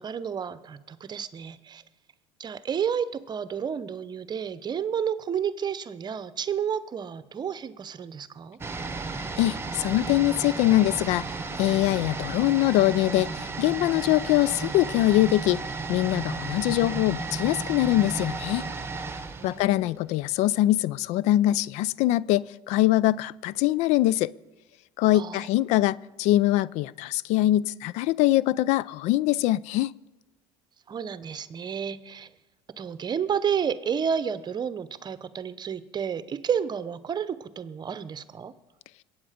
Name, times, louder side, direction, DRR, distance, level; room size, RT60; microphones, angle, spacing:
voice 1, 0.0-1.8 2.4-8.6 19.4-20.0 25.1-25.5 30.9-32.3 32.8-38.5, right 7 dB, 35° right, 0.8 m, -31 dB
sound 1, 8.6-20.3 20.6-20.7, right 3 dB, 20° right, 1.1 m, -34 dB
voice 2, 9.4-15.6 15.9-18.6 19.4-24.3 25.0-29.9, left 15 dB, 65° left, 0.4 m, -23 dB
22.0 x 8.7 x 5.1 m
supercardioid pair, 85°, 13 cm